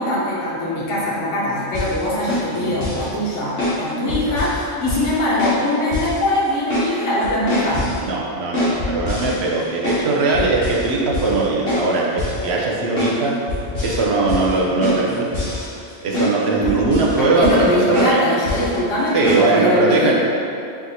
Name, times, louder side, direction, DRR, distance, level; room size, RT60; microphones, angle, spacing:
voice 1, 0.0-7.9 16.6-16.7 17.2-20.1, left 1 dB, 85° left, -7 dB, 1.1 m, -22 dB
sound 1, 1.8-2.0 2.3-3.1 3.6-3.8 4.1-4.6 4.9-5.1 5.4-5.6 5.9-6.2 6.5-6.9 7.2-8.0 8.5-10.1 10.3-10.9 11.1-11.4 11.7-11.9 12.2-12.4 13.0-13.2 13.5-14.0 14.3-14.5 14.8-16.3 16.6-17.2 17.4-17.7 17.9-18.1 18.5-18.7 19.2-19.4, left 2 dB, 55° left, 1.4 m, -24 dB
voice 2, 8.1-13.3 13.8-15.3 16.0-18.2 19.1-20.1, right 3 dB, 65° right, -3 dB, 0.8 m, -19 dB
4.5 x 3.5 x 2.7 m, 2.6 s
omnidirectional pair, 1.3 m